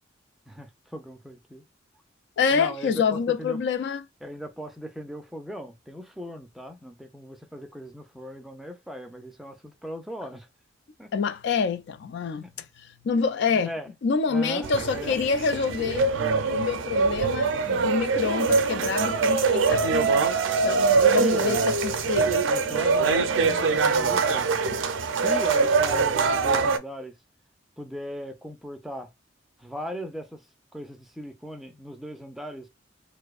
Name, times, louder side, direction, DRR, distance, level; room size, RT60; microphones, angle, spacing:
voice 1, 0.5-1.6 2.5-3.6 4.2-10.5 11.0-11.1 12.3-12.7 13.5-13.9 14.3-15.2 21.1-21.6 22.5-24.7 25.1-27.2 27.8-29.1 29.6-30.5 30.7-32.7, equal, ahead, 0.4 m, -38 dB
voice 2, 2.4-4.0 11.1-12.4 13.0-13.7 14.0-16.1 16.5-22.5, left 5 dB, 65° left, 0.4 m, -27 dB
sound 1, 14.6-26.8, right 4 dB, 85° right, 0.4 m, -23 dB
2.5 x 2.1 x 2.3 m
head